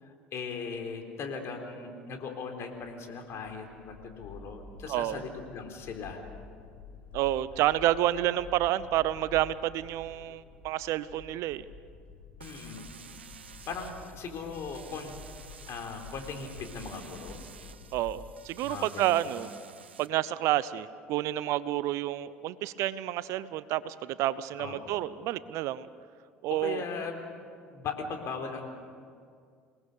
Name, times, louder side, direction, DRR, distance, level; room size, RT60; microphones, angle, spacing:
voice 1, 0.0-6.2 8.1-8.2 12.4-12.9 13.7-15.2 15.7-17.4 18.6-19.2 24.6-25.1 26.5-28.6, left 5 dB, 50° left, 4 dB, 4.0 m, -39 dB
sound 1, 3.3-18.7, left 4 dB, 80° left, 7.3 m, -50 dB
voice 2, 4.9-5.2 7.1-11.6 17.9-19.5 20.0-25.9 26.4-26.8, right 14 dB, 60° right, 17 dB, 0.7 m, -29 dB
sound 2, 12.4-20.1, right 7 dB, 90° right, 0.8 m, -51 dB
28.0 x 19.0 x 6.8 m, 2.2 s
hypercardioid pair, 65°, 6 cm